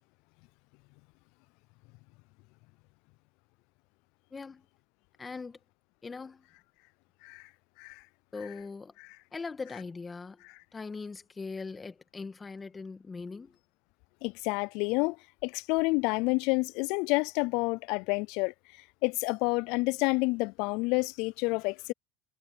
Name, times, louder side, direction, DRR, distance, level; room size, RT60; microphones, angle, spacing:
voice 1, 4.3-4.7 5.2-5.6 6.0-6.5 8.3-8.9 9.3-10.4 10.7-13.6, left 4 dB, 20° left, 1.6 m, -40 dB
voice 2, 14.2-15.2 15.4-18.5 19.0-21.9, left 27 dB, 65° left, 0.3 m, -29 dB
supercardioid pair, 115°, 0 cm